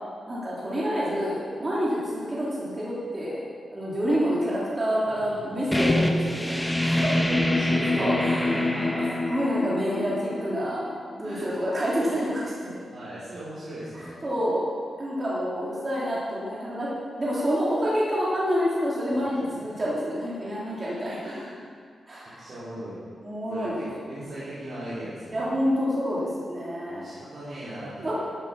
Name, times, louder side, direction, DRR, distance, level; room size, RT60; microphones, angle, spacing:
voice 1, 0.3-3.4 3.7-7.1 8.0-8.5 9.3-10.8 11.2-12.8 14.2-14.6 15.0-16.9 17.2-21.3 22.1-22.4 23.2-23.8 25.3-27.1 28.0-28.1, equal, 25° right, -8 dB, 3.2 m, -28 dB
voice 2, 5.0-5.8 6.5-9.1 11.2-11.6 12.9-14.2 20.8-20.9 21.2-21.7 22.3-23.0 23.5-25.5 26.9-28.1, right 1 dB, 45° right, -12 dB, 4.1 m, -38 dB
sound 1, 5.7-11.2, left 1 dB, 10° left, 1.0 m, -25 dB
13.5 x 9.0 x 6.0 m, 2.2 s
wide cardioid pair, 145°, 0 cm